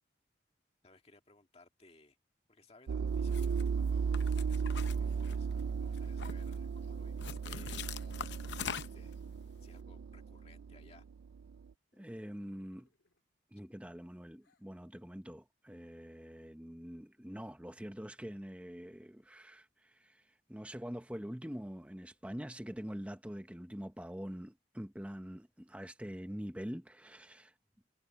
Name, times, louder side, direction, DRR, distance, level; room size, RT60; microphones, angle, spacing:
voice 1, 0.8-2.2 2.5-9.1 9.6-11.1, left 3 dB, 30° left, 1.9 m, -62 dB
sound 1, 2.9-11.6, right 6 dB, 85° right, 0.4 m, -36 dB
sound 2, 3.3-3.6 4.1-5.6 6.0-6.6 7.2-9.1, left 7 dB, 65° left, 0.7 m, -42 dB
sound 3, 11.9-13.2 13.9-14.7, left 2 dB, 85° left, 4.1 m, -71 dB
voice 2, 11.9-12.9 13.5-27.5, equal, 5° right, 0.8 m, -45 dB
head